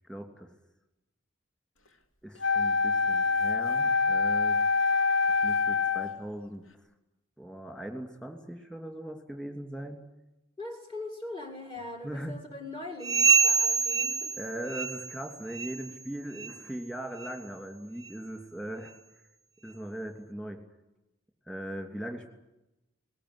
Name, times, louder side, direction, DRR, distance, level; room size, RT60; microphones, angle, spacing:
voice 1, 0.1-0.5 2.2-4.6 5.2-6.6 7.4-10.1 12.0-12.4 14.4-18.9 19.6-20.6 21.5-22.3, right 1 dB, 5° left, 3 dB, 2.8 m, -39 dB
Wind instrument woodwind instrument, 2.4-6.2, left 4 dB, 85° left, 2.3 m, -25 dB
voice 2, 10.6-14.3, left 2 dB, 25° left, 3 dB, 2.2 m, -41 dB
sound 1, 13.0-15.2 15.5-15.9 16.3-16.6 17.2-17.3 18.0-18.1 18.9-19.0, right 5 dB, 20° right, 0.7 m, -26 dB
20.0 x 17.5 x 9.9 m, 0.93 s
head